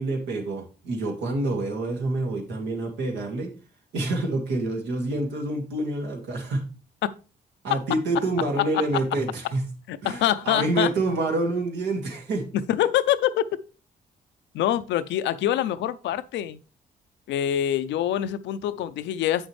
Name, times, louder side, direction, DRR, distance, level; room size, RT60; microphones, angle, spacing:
voice 1, 0.0-3.5 3.9-6.7 7.6-9.6 10.0-12.5, right 2 dB, 85° right, 2.1 m, -27 dB
voice 2, 9.9-10.9 12.7-13.5 14.5-16.6 17.3-19.5, left 11 dB, 80° left, 0.5 m, -25 dB
7.8 x 6.3 x 3.2 m
supercardioid pair, 55°, 19 cm